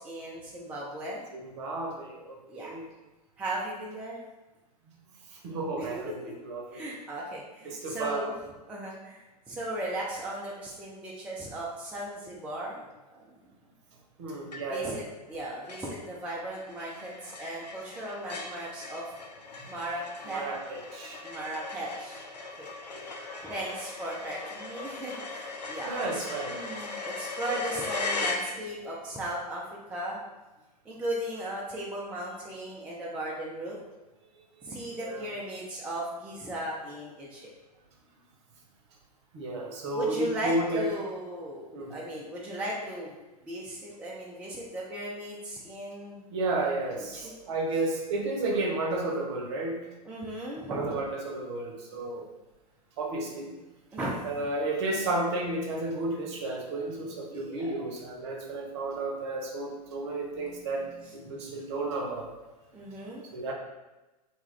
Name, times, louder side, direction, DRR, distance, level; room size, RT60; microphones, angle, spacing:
voice 1, 0.0-1.2 2.5-2.8 3.4-4.2 5.8-6.3 6.7-8.3 8.7-9.2 9.5-12.9 13.1-13.3 14.6-15.0 15.3-19.0 19.7-20.4 21.2-22.7 23.4-29.6 29.9-30.2 30.9-33.8 34.6-37.5 39.9-41.6 41.9-43.1 43.4-46.2 47.0-47.3 50.0-50.9 53.9-54.2 57.3-57.7 60.4-60.7 61.0-61.2 61.4-61.5 62.7-63.2, right 1 dB, 5° right, -4 dB, 0.3 m, -36 dB
voice 2, 1.3-2.9 5.3-6.8 7.6-8.3 14.2-14.9 20.3-21.2 22.9-23.5 25.8-26.6 35.0-35.3 39.3-40.9 41.7-41.9 46.3-49.8 50.7-52.3 53.0-53.5 54.2-60.9 61.1-62.3 63.3-63.5, right 2 dB, 45° right, 0 dB, 0.7 m, -32 dB
sound 1, 14.5-15.0 15.3-15.4 15.7-29.0, left 3 dB, 80° left, 0.5 m, -38 dB
2.9 x 2.3 x 3.1 m, 1.1 s
figure-of-eight pair, 95°, 21 cm